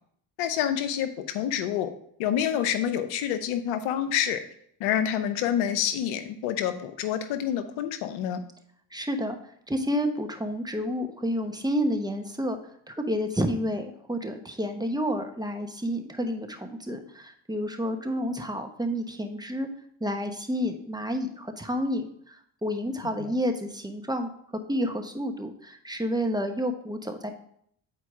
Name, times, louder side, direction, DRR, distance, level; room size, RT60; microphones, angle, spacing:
voice 1, 0.4-1.9 2.2-4.4 4.8-8.4 23.2-23.3, left 9 dB, 85° left, 10 dB, 0.7 m, -27 dB
voice 2, 8.9-9.4 9.7-12.6 12.9-19.7 20.0-24.3 24.7-27.3, equal, 10° right, 5 dB, 1.0 m, -30 dB
8.1 x 4.5 x 3.6 m, 0.65 s
hypercardioid pair, 50°, 48 cm